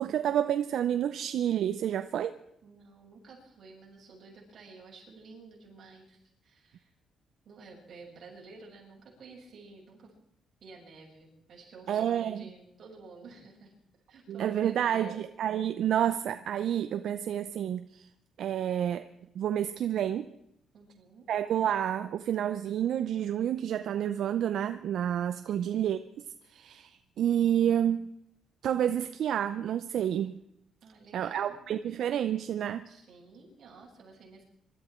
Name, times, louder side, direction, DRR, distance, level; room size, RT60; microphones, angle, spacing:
voice 1, 0.0-2.3 11.9-12.4 14.3-18.1 18.4-19.1 19.3-20.3 21.3-26.0 26.5-28.1 28.6-30.4 31.1-32.9, right 10 dB, 70° right, 0.6 m, -29 dB
voice 2, 2.6-6.9 7.4-10.1 10.6-13.7 14.1-15.2 20.7-21.3 25.3-25.7 30.8-31.6 32.8-34.5, right 3 dB, 50° right, 6.6 m, -52 dB
24.5 x 13.0 x 4.5 m
cardioid pair, 110°, 0 cm